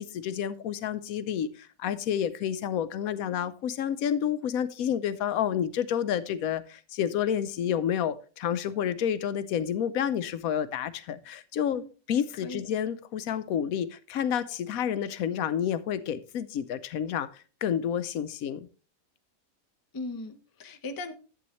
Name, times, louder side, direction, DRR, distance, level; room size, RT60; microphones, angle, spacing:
voice 1, 0.0-11.8 12.1-18.7, left 9 dB, 80° left, 1.1 m, -29 dB
voice 2, 11.5-11.9 12.4-12.7 19.9-21.1, left 2 dB, 25° left, 0.5 m, -38 dB
11.0 x 7.8 x 3.1 m
omnidirectional pair, 1.5 m